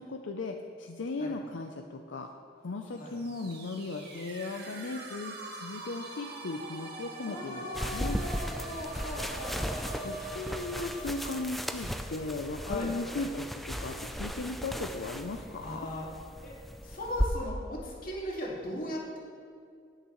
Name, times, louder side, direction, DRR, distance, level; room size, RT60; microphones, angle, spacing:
voice 1, 0.0-2.3 2.6-8.2 10.0-15.8, left 3 dB, 85° left, 4 dB, 0.6 m, -37 dB
sound 1, 2.9-12.7, right 2 dB, 60° right, 1.8 m, -44 dB
voice 2, 7.3-9.6 12.7-13.3 15.6-16.1 16.4-19.2, left 1 dB, 50° left, -4 dB, 2.2 m, -38 dB
sound 2, 7.7-17.3, equal, ahead, 0.4 m, -36 dB
18.5 x 6.6 x 3.1 m, 2.3 s
head